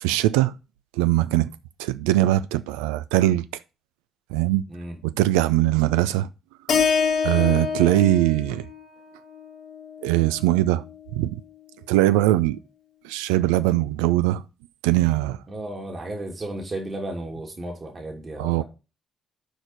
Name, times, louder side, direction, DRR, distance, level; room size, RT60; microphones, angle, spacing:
voice 1, 0.0-0.5 1.0-1.5 1.8-3.4 4.3-4.6 5.0-6.3 7.2-8.7 10.0-10.8 11.1-11.4 11.9-12.6 13.0-14.4 14.8-15.4 18.4-18.6, right 15 dB, 80° right, 0.4 m, -21 dB
Keyboard (musical), 6.7-10.9, left 6 dB, 65° left, 1.3 m, -27 dB
voice 2, 15.5-18.6, right 1 dB, 40° right, 2.6 m, -34 dB
6.2 x 5.1 x 5.7 m
hypercardioid pair, 45°, 0 cm